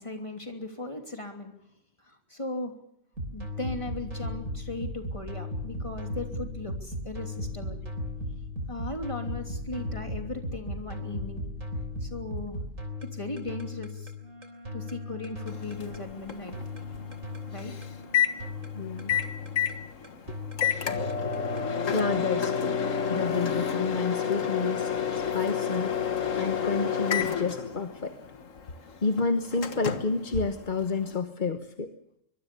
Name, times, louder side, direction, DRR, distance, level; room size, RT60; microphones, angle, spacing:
voice 1, 0.0-1.5 2.0-2.7 3.3-7.8 8.7-11.5 12.0-12.6 13.1-14.1 14.7-16.6 17.5-17.7, left 2 dB, 25° left, 5 dB, 3.0 m, -37 dB
sound 1, 3.2-21.7, left 1 dB, 85° right, 4.0 m, -37 dB
Wind instrument woodwind instrument, 14.2-18.6, equal, 45° right, 2.1 m, -50 dB
Microwave oven, 15.5-31.2, left 7 dB, 75° left, 1.8 m, -30 dB
voice 2, 18.7-19.2 21.9-22.8 23.1-25.9 26.4-28.2 29.0-31.9, left 4 dB, 40° left, 8 dB, 1.2 m, -30 dB
24.5 x 21.5 x 6.9 m, 0.74 s
omnidirectional pair, 1.3 m